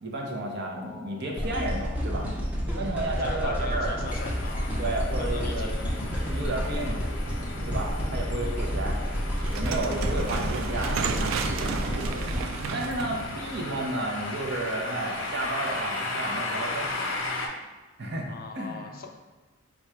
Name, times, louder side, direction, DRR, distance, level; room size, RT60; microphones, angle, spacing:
voice 1, 0.0-2.3 2.7-3.9 4.8-5.8 6.3-7.0 7.7-9.0 9.5-12.3 12.7-16.9 18.0-18.9, right 2 dB, 60° right, 0 dB, 0.7 m, -32 dB
voice 2, 0.5-1.3 3.0-4.9 5.2-5.7 9.8-10.7 18.3-19.1, left 5 dB, 45° left, 3 dB, 0.4 m, -42 dB
sound 1, 1.4-13.6 14.1-14.2, equal, 10° right, 0.7 m, -30 dB
sound 2, 4.1-17.5, left 2 dB, 80° left, 0.7 m, -36 dB
sound 3, 9.4-14.5, right 5 dB, 85° right, 0.3 m, -33 dB
3.8 x 2.4 x 4.4 m, 1.3 s
head